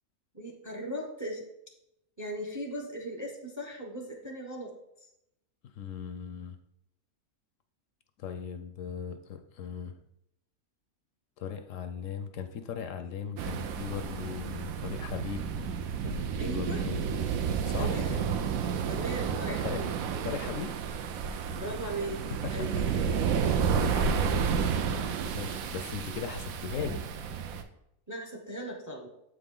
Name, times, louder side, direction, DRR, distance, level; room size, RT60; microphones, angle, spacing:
voice 1, 0.3-1.5 2.2-4.7 16.4-16.9 17.8-18.3 18.9-19.9 21.5-22.2 22.5-23.0 24.7-25.3 28.1-29.1, right 1 dB, 20° right, 2 dB, 0.6 m, -38 dB
voice 2, 5.6-6.6 8.2-9.9 11.4-15.5 16.0-17.1 17.6-18.0 19.6-19.8 20.2-20.7 22.4-22.8 23.3-24.5 25.3-27.1, left 7 dB, 70° left, 8 dB, 0.9 m, -38 dB
sound 1, 13.4-27.6, right 6 dB, 75° right, 1.0 m, -31 dB
7.7 x 4.9 x 3.7 m, 0.82 s
omnidirectional pair, 1.5 m